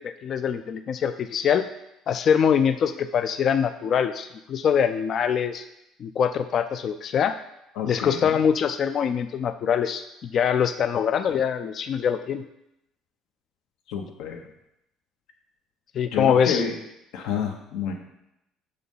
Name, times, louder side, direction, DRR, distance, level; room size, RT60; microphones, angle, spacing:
voice 1, 0.0-1.7 2.1-5.6 6.0-7.4 7.9-12.5 15.9-16.6, left 7 dB, 40° left, 9 dB, 0.3 m, -23 dB
voice 2, 7.8-8.4 13.9-14.4 16.1-16.7 17.1-17.9, left 7 dB, 80° left, 4 dB, 1.1 m, -29 dB
6.5 x 4.0 x 5.5 m, 0.84 s
cardioid pair, 145°, 0 cm